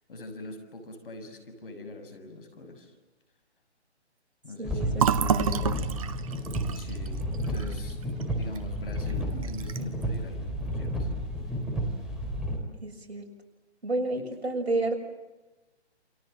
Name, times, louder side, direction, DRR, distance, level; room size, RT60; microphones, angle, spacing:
voice 1, 0.1-2.9 4.4-5.1 6.7-8.0 8.3-11.1 14.1-14.5, left 2 dB, 50° left, 8 dB, 6.7 m, -43 dB
sound 1, 4.6-12.6, equal, ahead, 3.4 m, -32 dB
voice 2, 4.6-5.9 12.8-13.3 13.8-15.0, right 2 dB, 65° right, 3 dB, 6.9 m, -31 dB
Fill (with liquid), 5.0-8.6 9.0-9.1 9.4-10.0, right 8 dB, 30° right, 1.1 m, -29 dB
29.0 x 26.0 x 7.7 m, 1.1 s
figure-of-eight pair, 145°, 34 cm